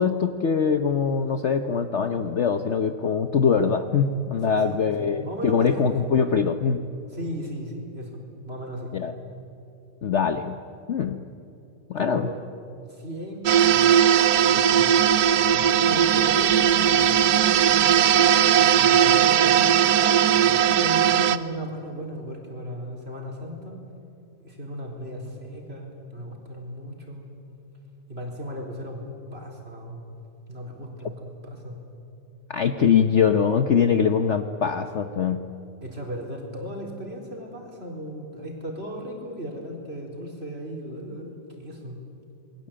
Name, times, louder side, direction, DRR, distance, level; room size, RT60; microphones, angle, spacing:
voice 1, 0.0-6.8 8.9-9.1 10.0-10.6 10.9-11.2 11.9-12.3 32.5-35.4, left 6 dB, 50° left, 8 dB, 1.0 m, -23 dB
voice 2, 4.5-6.0 7.1-8.2 8.5-9.0 12.0-12.4 12.9-13.9 14.5-14.9 15.4-19.8 20.3-23.8 24.4-27.3 28.1-29.0 29.3-30.0 30.5-31.8 35.8-42.0, equal, 35° right, 0 dB, 4.5 m, -36 dB
sound 1, 13.5-21.4, right 9 dB, 65° right, 1.2 m, -18 dB
27.5 x 21.5 x 8.7 m, 2.8 s
omnidirectional pair, 1.9 m